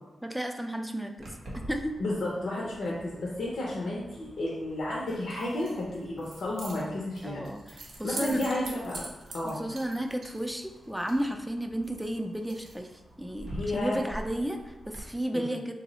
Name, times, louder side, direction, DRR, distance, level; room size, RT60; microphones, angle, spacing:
voice 1, 0.2-1.3 1.7-2.0 7.2-7.6 8.0-8.4 9.4-12.9 13.2-15.7, right 1 dB, 5° right, 4 dB, 0.4 m, -33 dB
Keys jangling, 1.2-15.0, right 1 dB, 75° right, 0.6 m, -45 dB
voice 2, 2.0-7.4 8.0-9.1 9.3-9.6 13.5-14.0 15.3-15.5, left 1 dB, 75° left, -5 dB, 0.6 m, -32 dB
2.7 x 2.0 x 3.8 m, 1.1 s
cardioid pair, 55°, 0 cm